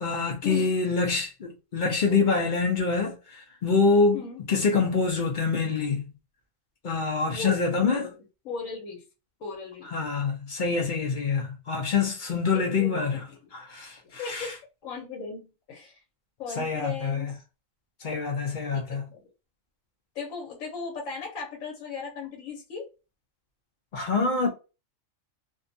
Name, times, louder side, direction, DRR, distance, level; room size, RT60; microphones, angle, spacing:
voice 1, 0.0-4.2 4.5-6.1 6.8-8.1 9.9-13.2 13.7-14.5 16.6-17.3 18.0-19.0 23.9-24.5, left 4 dB, 55° left, 0.5 m, -25 dB
voice 2, 7.3-8.2 8.4-9.0 9.4-9.9 12.5-13.5 14.1-14.5 14.8-16.0 16.4-17.4 18.7-18.8 19.1-19.2 20.1-22.9, left 5 dB, 75° left, 1.1 m, -37 dB
2.5 x 2.2 x 2.6 m
omnidirectional pair, 1.4 m